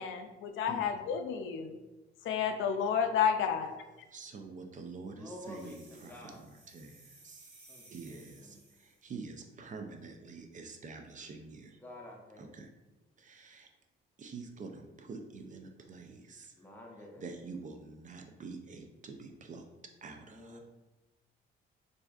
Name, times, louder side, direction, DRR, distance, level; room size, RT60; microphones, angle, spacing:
voice 1, 0.0-1.8 2.2-3.7, left 7 dB, 80° left, 7 dB, 0.4 m, -31 dB
voice 2, 0.7-1.1 3.6-3.7 4.1-7.5 7.9-11.8 12.4-12.7 13.2-13.7 14.2-16.7 16.9-19.7 20.0-20.6, right 4 dB, 40° right, 5 dB, 0.4 m, -47 dB
voice 3, 5.2-6.4 7.7-8.5 11.8-12.5 16.6-17.2 20.3-20.6, left 1 dB, 10° left, -1 dB, 0.8 m, -49 dB
sound 1, 5.4-9.0, right 2 dB, 85° right, 1.0 m, -59 dB
4.2 x 2.6 x 2.4 m, 1.1 s
cardioid pair, 90°, 20 cm